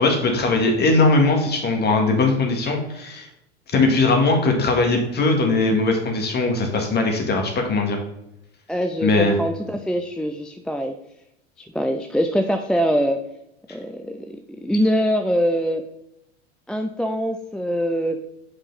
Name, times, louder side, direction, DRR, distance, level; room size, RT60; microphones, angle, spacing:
voice 1, 0.0-3.3 3.7-8.0 9.0-9.3, left 3 dB, 30° left, 2 dB, 1.9 m, -20 dB
voice 2, 8.7-10.9 11.6-13.2 13.7-15.8 16.7-18.2, equal, ahead, 4 dB, 0.4 m, -23 dB
7.3 x 5.0 x 4.0 m, 0.84 s
hypercardioid pair, 90°, 33 cm